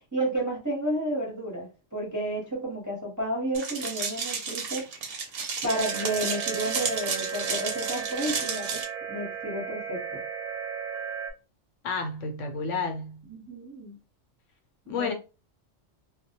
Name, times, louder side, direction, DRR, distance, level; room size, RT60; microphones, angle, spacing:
voice 1, 0.1-4.9 5.6-10.2 13.3-13.9 14.9-15.1, right 1 dB, 15° right, 0.7 m, -31 dB
sound 1, 3.5-8.8, right 5 dB, 60° right, 0.7 m, -32 dB
sound 2, 5.6-11.3, right 7 dB, 90° right, 0.4 m, -35 dB
voice 2, 11.8-13.2 14.9-15.1, left 4 dB, 75° left, 0.9 m, -30 dB
2.2 x 2.1 x 2.8 m
omnidirectional pair, 1.3 m